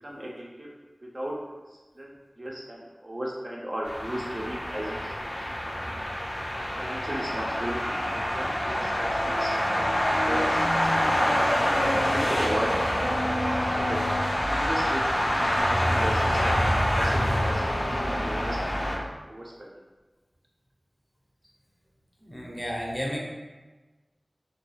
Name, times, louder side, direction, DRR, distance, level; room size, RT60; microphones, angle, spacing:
voice 1, 0.0-0.7 1.1-1.4 1.7-6.1 6.8-10.8 11.2-11.5 12.0-14.0 14.5-16.5 16.9-19.7, equal, 40° right, -3 dB, 0.4 m, -36 dB
sound 1, 3.8-19.0, equal, 65° left, 0.5 m, -26 dB
voice 2, 22.2-23.2, equal, 5° left, -3 dB, 0.6 m, -32 dB
2.2 x 2.2 x 3.1 m, 1.2 s
wide cardioid pair, 50°, 0 cm